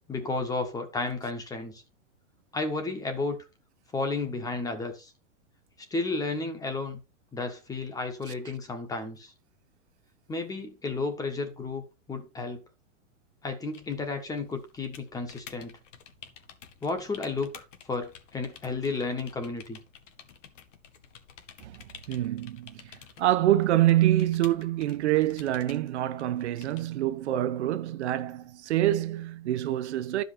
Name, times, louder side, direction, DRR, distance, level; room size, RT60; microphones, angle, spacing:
voice 1, 0.0-1.8 2.5-3.4 3.9-5.1 5.9-7.0 7.3-9.3 10.3-11.8 12.1-12.6 13.4-15.7 16.8-19.8, left 3 dB, 10° left, 1.4 m, -32 dB
sound 1, 13.7-26.9, left 8 dB, 70° left, 1.8 m, -51 dB
voice 2, 22.1-22.9 23.2-30.2, right 13 dB, 60° right, 0.9 m, -26 dB
11.5 x 5.4 x 4.3 m
hypercardioid pair, 150°, 38 cm